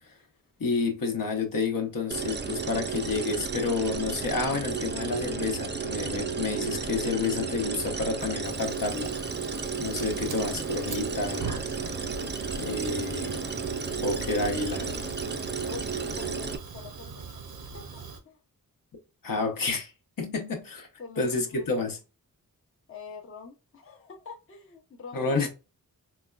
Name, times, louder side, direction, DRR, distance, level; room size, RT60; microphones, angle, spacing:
voice 1, 0.6-9.2 9.8-11.6 12.6-13.4 14.0-14.9 19.2-19.9 20.2-20.9 21.2-22.0 25.1-25.5, left 3 dB, 65° left, 0.9 m, -29 dB
sound 1, 2.1-16.6, right 5 dB, 30° right, 0.4 m, -33 dB
Fire, 3.9-18.2, right 4 dB, 80° right, 0.7 m, -43 dB
voice 2, 15.7-17.3 17.7-18.4 21.0-21.9 22.9-25.5, left 4 dB, 40° left, 0.7 m, -45 dB
4.1 x 2.2 x 2.3 m
wide cardioid pair, 95°, 36 cm